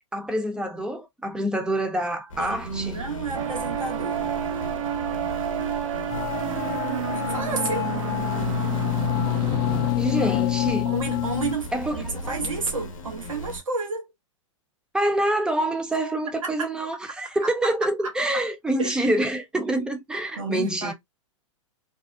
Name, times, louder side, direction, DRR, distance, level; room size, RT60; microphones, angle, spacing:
voice 1, 0.1-3.0 10.0-10.9 11.7-12.3 14.9-20.9, right 1 dB, 5° right, 0.6 m, -26 dB
sound 1, 2.3-13.6, left 1 dB, 85° left, 0.7 m, -37 dB
voice 2, 2.4-4.3 7.1-8.0 10.8-14.1 16.4-16.7 17.4-18.5 18.8-19.1 19.6-19.7 20.4-20.9, right 4 dB, 85° right, 0.9 m, -31 dB
sound 2, 3.3-9.9, right 9 dB, 70° right, 0.4 m, -30 dB
sound 3, 6.1-11.5, left 16 dB, 45° left, 0.4 m, -27 dB
2.6 x 2.0 x 2.4 m
hypercardioid pair, 110°, 17 cm